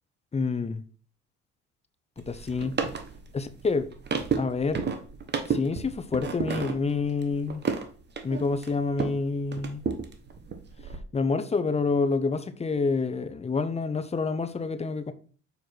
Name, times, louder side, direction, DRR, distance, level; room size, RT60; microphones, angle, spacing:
voice 1, 0.3-0.8 2.2-2.8 3.3-3.9 4.4-4.8 5.5-7.6 8.2-9.8 11.1-15.1, left 4 dB, 20° left, 0.8 m, -28 dB
sound 1, 2.2-9.2 9.5-11.0, right 5 dB, 35° right, 1.1 m, -32 dB
6.7 x 4.5 x 4.6 m
cardioid pair, 105°, 30 cm